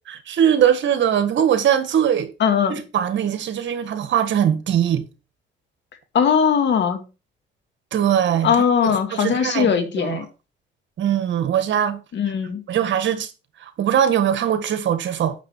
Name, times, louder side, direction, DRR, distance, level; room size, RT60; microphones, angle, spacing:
voice 1, 0.1-2.3 2.7-5.0 7.9-9.7 10.0-10.2 11.0-12.0 12.7-13.3 13.6-15.3, right 9 dB, 70° right, 1.7 m, -21 dB
voice 2, 2.4-2.7 6.1-7.0 8.4-10.3 12.1-12.6, left 7 dB, 65° left, 2.1 m, -19 dB
9.3 x 6.8 x 4.6 m
cardioid pair, 90°, 20 cm